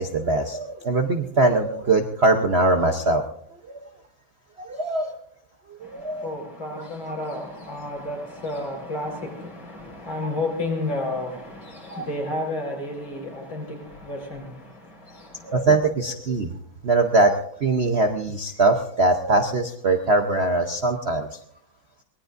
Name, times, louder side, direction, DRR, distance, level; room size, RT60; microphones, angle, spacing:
voice 1, 0.0-3.2 3.7-3.8 4.6-5.1 5.8-6.3 7.1-7.2 10.2-10.3 11.9-12.1 15.5-16.5 16.8-17.3 17.6-21.3, right 2 dB, 50° right, 0.7 m, -22 dB
voice 2, 5.8-15.6, left 2 dB, 75° left, 5.4 m, -32 dB
23.0 x 19.0 x 2.6 m
omnidirectional pair, 2.2 m